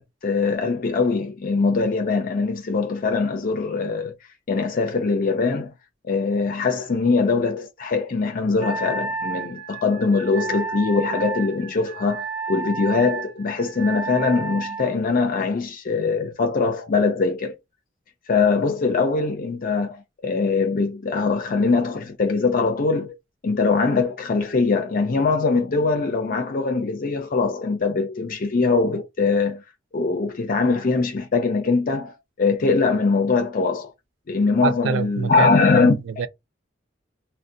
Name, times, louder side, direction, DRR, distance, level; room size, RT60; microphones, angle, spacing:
voice 1, 0.0-4.1 4.5-5.7 6.1-17.6 18.3-23.2 23.4-29.6 29.9-33.9 34.3-36.2, left 4 dB, 50° left, 0.5 m, -22 dB
Wind instrument woodwind instrument, 8.6-14.9, right 4 dB, 30° right, 0.9 m, -31 dB
voice 2, 34.6-36.3, right 5 dB, 80° right, 0.4 m, -26 dB
3.9 x 2.1 x 2.6 m
head